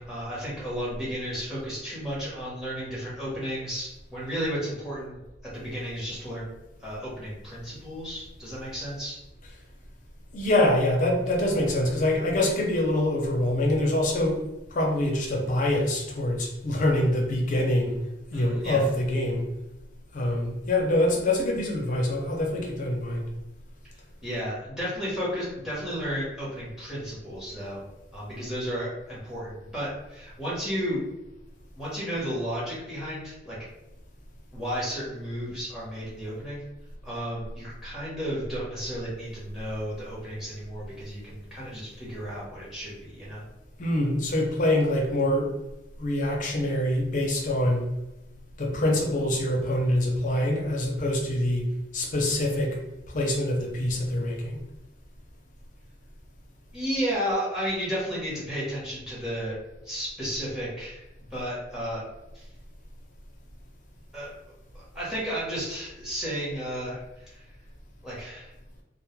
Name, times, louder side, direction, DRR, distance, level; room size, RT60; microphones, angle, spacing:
voice 1, 0.0-6.5 6.8-9.2 18.3-18.8 24.2-27.8 28.1-31.0 31.7-33.6 34.5-36.6 37.0-43.4 56.7-59.6 59.8-61.0 61.3-62.0 62.3-62.5 64.1-64.3 64.7-67.5 68.0-68.5, equal, 5° right, -7 dB, 0.8 m, -33 dB
voice 2, 10.3-14.4 14.7-18.0 18.3-19.5 20.1-23.3 43.8-45.5 46.0-47.9 48.6-52.8 53.1-54.6, left 1 dB, 45° left, 0 dB, 0.5 m, -25 dB
2.2 x 2.0 x 2.9 m, 0.95 s
head